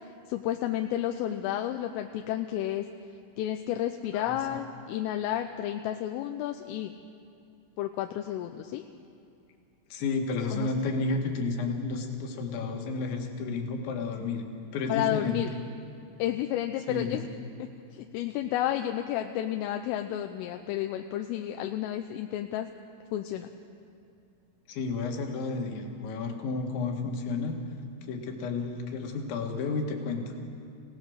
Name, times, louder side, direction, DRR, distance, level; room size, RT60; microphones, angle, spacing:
voice 1, 0.3-2.9 3.4-6.9 7.8-8.8 10.5-10.7 14.9-15.5 16.2-17.2 17.6-22.7 23.1-23.5, left 12 dB, 85° left, 5 dB, 3.3 m, -31 dB
voice 2, 9.9-14.5 14.7-15.5 16.9-17.3 24.7-27.6 28.0-30.3, left 4 dB, 70° left, 2 dB, 4.0 m, -31 dB
29.0 x 17.5 x 6.5 m, 2.6 s
omnidirectional pair, 5.8 m